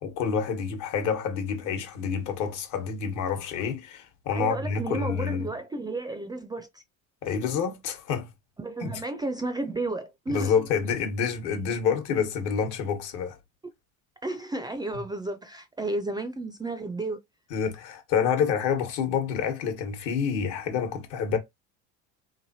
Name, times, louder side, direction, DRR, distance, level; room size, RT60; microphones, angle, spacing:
voice 1, 0.0-5.5 7.2-8.3 8.8-8.9 10.3-13.4 17.5-21.4, left 6 dB, 60° left, 1.2 m, -28 dB
voice 2, 4.3-6.8 8.6-10.5 14.2-17.2, right 2 dB, 10° right, 0.4 m, -32 dB
3.2 x 2.6 x 2.6 m
supercardioid pair, 100°, 34 cm